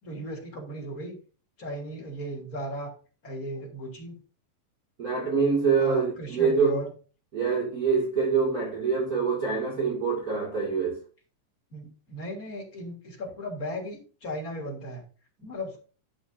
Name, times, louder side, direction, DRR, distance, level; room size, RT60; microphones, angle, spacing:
voice 1, 0.0-1.2 1.6-2.9 3.2-4.1 5.8-6.9 11.7-15.0 15.4-15.8, equal, 30° left, 3.4 m, -36 dB
voice 2, 5.0-6.8 7.3-11.0, right 5 dB, 30° right, 2.6 m, -25 dB
11.0 x 8.8 x 2.7 m
omnidirectional pair, 3.5 m